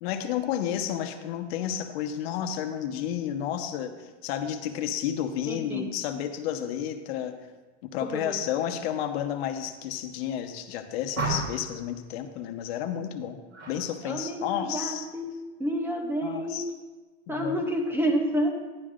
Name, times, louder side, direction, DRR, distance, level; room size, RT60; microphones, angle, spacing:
voice 1, 0.0-7.4 7.8-13.4 13.7-15.1 16.2-16.7 17.3-17.6, left 10 dB, 65° left, 7 dB, 0.9 m, -31 dB
voice 2, 5.5-5.9 8.0-8.4 14.0-15.3 15.6-16.7 17.3-18.5, equal, 5° right, 2 dB, 0.6 m, -29 dB
sound 1, 11.1-11.8 13.5-13.8 14.2-14.6, right 2 dB, 85° right, 3.2 m, -32 dB
11.5 x 10.5 x 2.5 m, 1.3 s
supercardioid pair, 155°, 34 cm